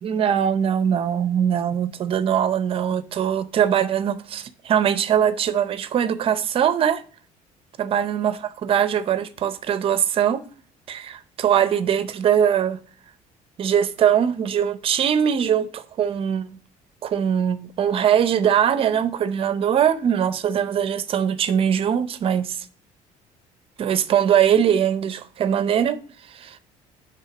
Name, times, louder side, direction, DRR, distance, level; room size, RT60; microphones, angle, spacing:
voice 1, 0.0-7.0 7.8-10.4 10.9-12.8 13.6-16.6 17.0-22.6 23.8-26.0 26.3-26.6, right 9 dB, 40° right, 0.7 m, -21 dB
9.0 x 3.6 x 5.7 m
cardioid pair, 145°, 14 cm